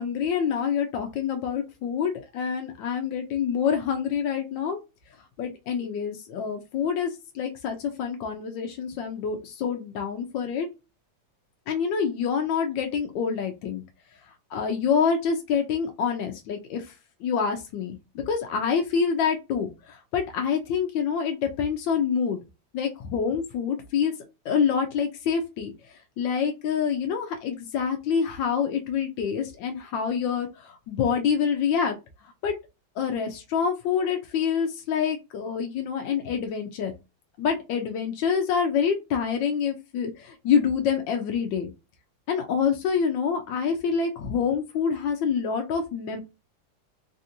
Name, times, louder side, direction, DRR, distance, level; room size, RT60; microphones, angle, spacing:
voice 1, 0.0-4.8 5.4-10.7 11.7-13.8 14.5-16.8 17.2-19.7 20.1-22.4 22.7-24.1 24.5-25.7 26.2-30.5 30.9-32.0 32.4-32.5 33.0-36.9 37.4-41.7 42.3-46.2, left 6 dB, 80° left, 4 dB, 1.3 m, -26 dB
3.4 x 2.5 x 2.7 m, 0.26 s
omnidirectional pair, 2.0 m